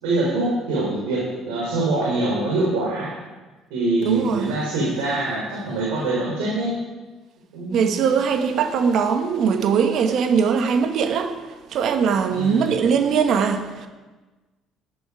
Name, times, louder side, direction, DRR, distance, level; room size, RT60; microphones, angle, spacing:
voice 1, 0.0-3.1 3.7-6.8 7.5-7.9 12.3-12.8, right 2 dB, 85° right, 3.8 m, -24 dB
voice 2, 4.0-4.5 7.7-11.4 11.7-13.9, right 6 dB, 65° right, 1.4 m, -21 dB
12.0 x 11.0 x 4.9 m
supercardioid pair, 75°, 0 cm